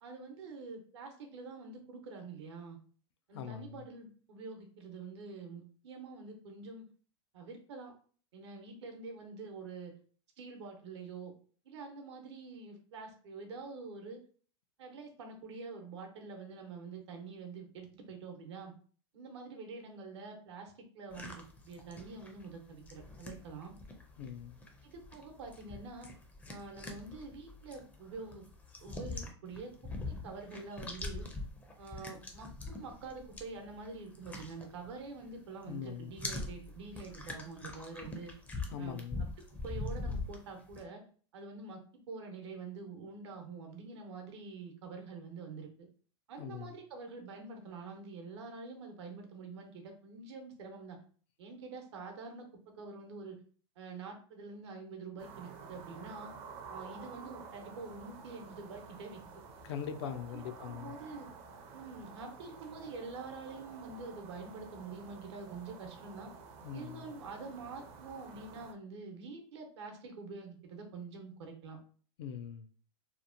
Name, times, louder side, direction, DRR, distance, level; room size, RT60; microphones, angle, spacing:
voice 1, 0.0-2.8 3.3-6.8 7.3-7.9 8.3-9.9 10.4-11.3 11.6-14.2 14.8-18.7 19.1-23.7 24.8-26.1 26.5-28.4 28.8-29.7 30.1-31.3 31.8-38.3 38.8-39.3 39.6-41.0 41.3-41.8 42.1-45.7 46.3-51.0 51.4-52.5 52.8-53.4 53.8-56.3 56.7-59.2 60.0-61.3 61.7-66.3 66.7-71.8, right 4 dB, 80° right, 0.8 m, -46 dB
voice 2, 3.3-3.9 24.2-24.6 35.7-36.1 38.7-39.3 46.4-46.8 59.6-60.9 66.6-67.1 72.2-72.7, left 8 dB, 70° left, 0.4 m, -42 dB
sound 1, 21.1-35.4 35.6-40.8, left 2 dB, 10° left, 0.4 m, -44 dB
sound 2, 55.2-68.7, right 5 dB, 45° right, 0.5 m, -51 dB
2.8 x 2.1 x 2.5 m
supercardioid pair, 125°, 14 cm